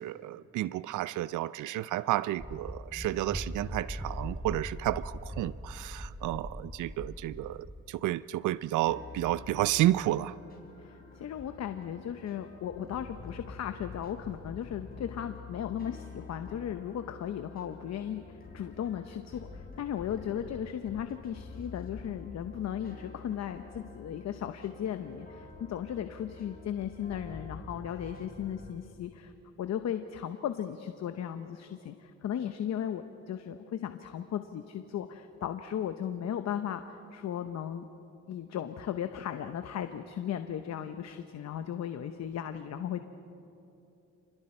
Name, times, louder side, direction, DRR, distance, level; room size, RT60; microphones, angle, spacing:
voice 1, 0.0-10.3, right 15 dB, 80° right, 18 dB, 0.5 m, -31 dB
sound 1, 2.4-7.8, equal, 5° right, 0.7 m, -40 dB
sound 2, 8.9-28.7, left 4 dB, 30° left, 4.3 m, -48 dB
voice 2, 10.8-29.3 29.6-37.8 38.3-43.0, left 9 dB, 60° left, 8 dB, 0.9 m, -36 dB
28.5 x 21.0 x 4.5 m, 2.8 s
cardioid pair, 90°, 30 cm